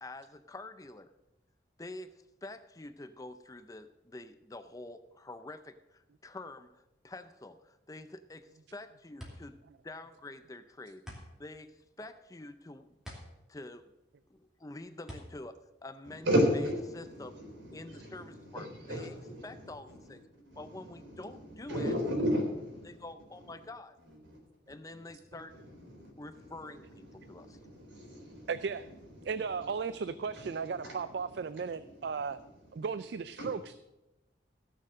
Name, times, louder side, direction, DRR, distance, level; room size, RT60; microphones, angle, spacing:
voice 1, 0.0-1.1 1.8-9.6 9.8-12.9 13.5-13.9 14.3-15.6 15.8-16.3 16.9-17.4 17.7-19.2 19.4-20.2 20.6-21.9 22.8-24.0 24.7-25.5 26.2-27.6, left 2 dB, 20° left, 11 dB, 0.5 m, -47 dB
sound 1, 8.7-16.7, equal, 5° right, 2.5 m, -50 dB
voice 2, 16.0-20.1 20.4-23.5 24.1-24.4 24.7-24.8 25.1-25.2 25.5-32.9 33.4-33.6, equal, 80° right, 2 dB, 3.8 m, -36 dB
voice 3, 28.5-28.9 29.2-32.4 32.7-33.8, right 5 dB, 60° right, 14 dB, 0.4 m, -35 dB
17.0 x 6.6 x 6.4 m, 0.99 s
head